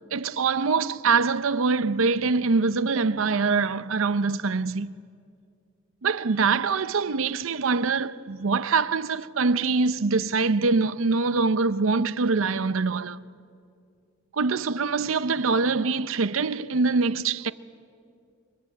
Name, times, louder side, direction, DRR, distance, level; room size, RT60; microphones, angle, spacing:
voice 1, 0.1-4.9 6.0-13.2 14.3-17.5, right 4 dB, 85° right, 0.7 m, -24 dB
29.5 x 21.5 x 8.4 m
head